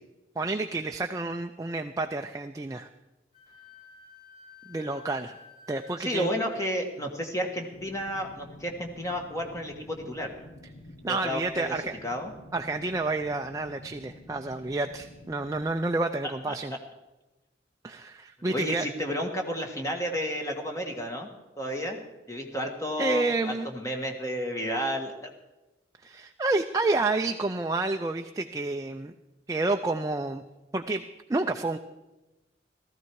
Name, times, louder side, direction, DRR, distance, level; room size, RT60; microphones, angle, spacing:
voice 1, 0.4-2.9 4.7-5.3 5.7-6.3 11.0-12.0 12.5-16.7 17.8-18.9 23.0-23.7 26.0-29.1 29.5-30.4 30.7-31.8, right 2 dB, 20° right, 5 dB, 0.4 m, -29 dB
Wind instrument woodwind instrument, 3.3-6.1, left 5 dB, 35° left, 5.3 m, -52 dB
voice 2, 6.0-10.3 11.0-11.8 12.0-12.3 16.2-16.5 18.5-21.3 21.6-22.0 22.3-25.3, equal, 20° left, 2 dB, 1.4 m, -32 dB
sound 1, 7.7-15.7, left 1 dB, 70° left, 1.1 m, -49 dB
15.5 x 14.0 x 4.7 m, 1.0 s
head